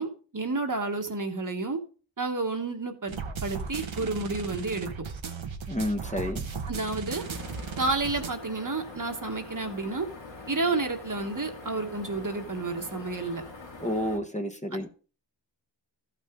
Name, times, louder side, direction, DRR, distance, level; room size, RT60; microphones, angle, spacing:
voice 1, 0.0-1.8 2.2-4.9 6.7-7.2 7.8-10.1 10.5-13.4 14.7-14.8, right 3 dB, 40° right, 4 dB, 1.4 m, -30 dB
sound 1, 3.1-8.3, right 5 dB, 90° right, 1.1 m, -36 dB
voice 2, 5.7-6.4 13.8-14.9, left 1 dB, 15° left, 3 dB, 1.2 m, -30 dB
sound 2, 7.2-14.2, left 3 dB, 70° left, 2.5 m, -44 dB
13.5 x 6.0 x 3.7 m, 0.38 s
wide cardioid pair, 80°, 46 cm